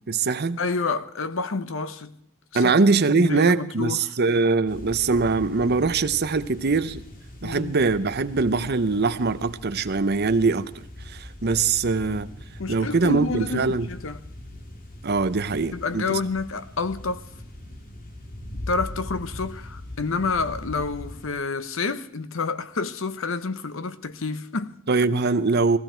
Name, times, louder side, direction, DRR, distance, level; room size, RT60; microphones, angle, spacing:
voice 1, 0.1-0.6 2.5-7.0 7.4-12.3 12.7-13.9 15.0-16.2 24.9-25.8, right 4 dB, 50° right, 0.8 m, -22 dB
voice 2, 0.6-2.1 2.5-2.7 3.1-4.1 7.4-7.7 12.6-14.2 15.7-17.3 18.7-24.8, left 3 dB, 70° left, 0.9 m, -29 dB
sound 1, 4.7-21.3, left 1 dB, 45° left, 2.3 m, -41 dB
18.5 x 15.5 x 4.5 m
head